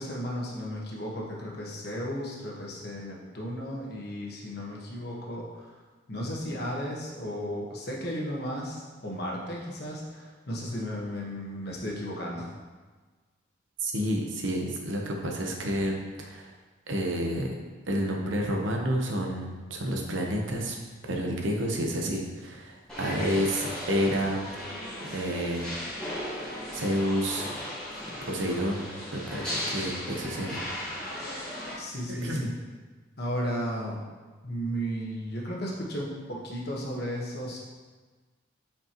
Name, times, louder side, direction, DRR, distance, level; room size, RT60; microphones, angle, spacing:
voice 1, 0.0-5.7 6.1-12.5 31.8-32.5 33.2-34.0 34.4-37.6, equal, 50° left, -3 dB, 1.3 m, -34 dB
voice 2, 13.8-16.5 16.9-17.5 17.9-20.8 21.0-24.5 25.0-25.7 26.7-27.5 28.3-30.6 32.1-32.5, equal, 75° right, 1 dB, 1.0 m, -30 dB
sound 1, 22.9-31.7, left 1 dB, 5° left, 1.8 m, -36 dB
7.5 x 5.2 x 3.0 m, 1.3 s
head